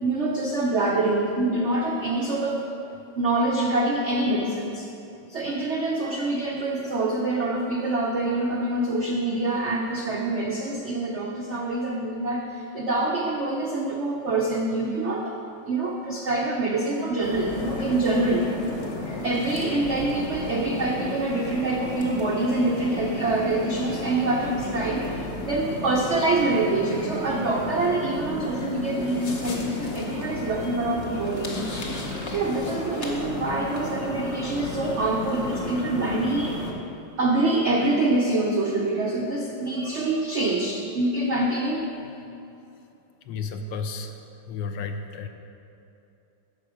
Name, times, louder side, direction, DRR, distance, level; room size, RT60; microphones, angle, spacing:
voice 1, 0.0-2.7 3.2-4.9 5.3-15.3 15.7-18.4 19.2-31.7 32.2-36.6 37.2-41.9, right 2 dB, 75° right, 0 dB, 0.6 m, -25 dB
sound 1, 17.2-36.7, left 2 dB, 40° left, 1.1 m, -33 dB
voice 2, 43.3-44.1 44.5-45.3, left 5 dB, 75° left, 6 dB, 1.2 m, -32 dB
10.5 x 6.6 x 4.9 m, 2.8 s
omnidirectional pair, 2.2 m